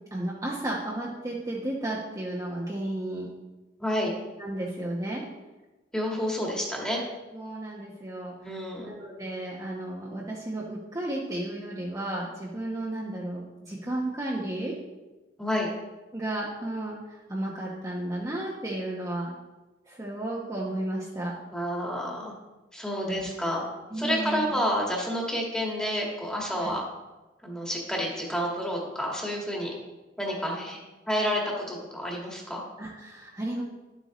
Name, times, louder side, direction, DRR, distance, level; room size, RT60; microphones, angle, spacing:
voice 1, 0.1-3.3 4.4-5.2 7.3-8.3 8.8-14.7 16.1-17.0 17.3-19.3 19.9-21.3 23.0-23.3 23.9-24.5 26.6-26.7 32.8-33.6, right 1 dB, 20° right, -5 dB, 1.1 m, -33 dB
voice 2, 3.8-4.1 5.9-7.0 8.4-8.9 15.4-15.7 21.5-22.3 22.7-23.6 23.9-26.8 27.4-29.7 30.2-30.8 31.1-32.6, equal, 5° left, -2 dB, 1.8 m, -29 dB
11.0 x 8.0 x 3.1 m, 1.1 s
head